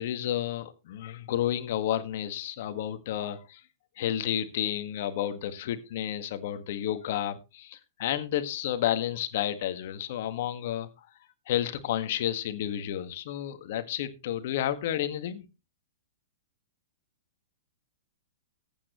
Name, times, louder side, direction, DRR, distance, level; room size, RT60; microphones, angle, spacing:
voice 1, 0.0-3.6 4.0-10.9 11.5-15.4, left 11 dB, 60° left, 1.7 m, -31 dB
14.5 x 8.8 x 3.1 m
hypercardioid pair, 130°, 0 cm